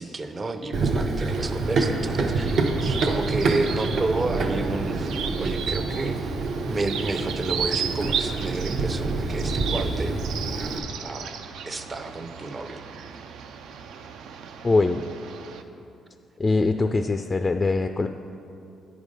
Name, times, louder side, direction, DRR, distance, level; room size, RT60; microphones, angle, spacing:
voice 1, 0.0-6.2 6.5-10.2 11.0-11.4 11.6-12.8, right 2 dB, 30° right, 8 dB, 0.5 m, -30 dB
Run, 0.7-10.8, right 3 dB, 65° right, 0.8 m, -27 dB
sound 1, 1.3-15.6, right 7 dB, 80° right, 0.4 m, -35 dB
voice 2, 14.6-15.0 16.4-18.1, left 3 dB, 30° left, 7 dB, 0.3 m, -22 dB
9.8 x 4.9 x 5.3 m, 2.7 s
cardioid pair, 90°, 0 cm